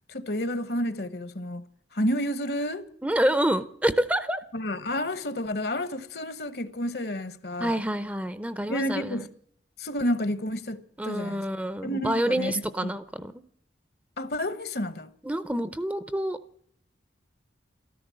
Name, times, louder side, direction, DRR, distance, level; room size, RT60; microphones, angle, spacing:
voice 1, 0.1-1.6 1.9-2.9 4.5-7.8 8.7-9.3 9.8-11.4 11.8-13.0 14.2-15.1, left 1 dB, 60° left, 1.1 m, -30 dB
voice 2, 3.0-4.4 7.6-9.2 11.0-13.3 15.2-16.4, right 1 dB, 10° right, 0.6 m, -27 dB
14.0 x 13.5 x 7.6 m
head